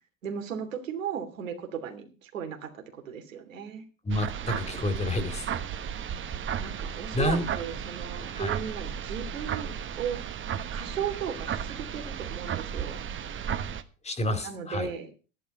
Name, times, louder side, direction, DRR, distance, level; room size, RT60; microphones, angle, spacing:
voice 1, 0.2-3.8 6.6-10.2 10.7-13.0 14.4-15.1, right 8 dB, 85° right, 5 dB, 3.0 m, -36 dB
voice 2, 4.0-5.5 7.1-7.4 8.2-8.5 14.0-14.9, left 1 dB, 15° left, 10 dB, 2.5 m, -29 dB
sound 1, 4.1-13.8, right 8 dB, 30° right, 1.3 m, -34 dB
12.0 x 11.0 x 5.4 m, 0.34 s
hypercardioid pair, 90°, 38 cm